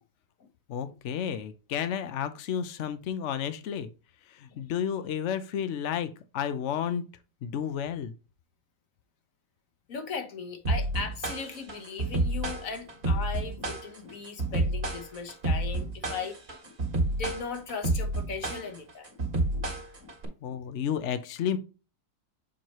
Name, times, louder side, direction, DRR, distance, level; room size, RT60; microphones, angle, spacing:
voice 1, 0.7-3.9 4.6-6.1 6.3-7.0 7.4-8.1 20.4-21.6, left 8 dB, 75° left, 0.6 m, -31 dB
voice 2, 9.9-16.4 16.6-16.7 17.1-19.2 19.5-19.7 20.0-20.1 20.5-20.6, left 5 dB, 50° left, 1.4 m, -38 dB
sound 1, 10.6-20.2, right 2 dB, 35° right, 1.7 m, -29 dB
7.3 x 4.6 x 3.0 m
omnidirectional pair, 2.0 m